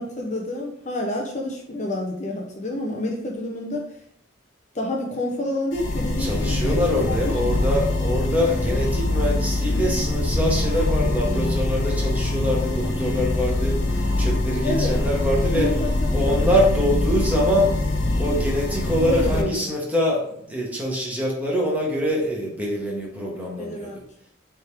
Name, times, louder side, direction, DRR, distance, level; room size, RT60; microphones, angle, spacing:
voice 1, 0.0-3.8 4.7-7.6 14.6-15.0 15.5-16.5 19.1-19.7 23.6-24.0, left 1 dB, 40° left, 0 dB, 0.8 m, -29 dB
sound 1, 5.7-19.4, left 2 dB, 80° left, 0.9 m, -23 dB
voice 2, 6.2-15.7 16.1-23.9, equal, 10° right, -3 dB, 1.4 m, -24 dB
7.8 x 3.6 x 3.5 m, 0.68 s
head